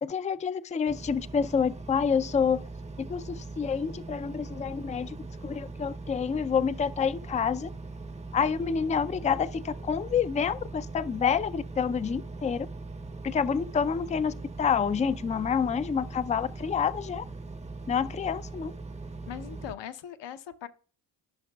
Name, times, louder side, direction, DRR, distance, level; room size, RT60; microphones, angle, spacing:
voice 1, 0.0-2.6 3.0-5.2 5.4-7.7 8.3-12.7 13.2-17.2 17.9-18.7, left 6 dB, 15° left, 0.4 m, -28 dB
Engine, 0.9-19.7, right 3 dB, 15° right, 0.7 m, -41 dB
voice 2, 19.3-20.7, left 10 dB, 65° left, 0.9 m, -40 dB
14.0 x 5.8 x 2.3 m
supercardioid pair, 55°, 47 cm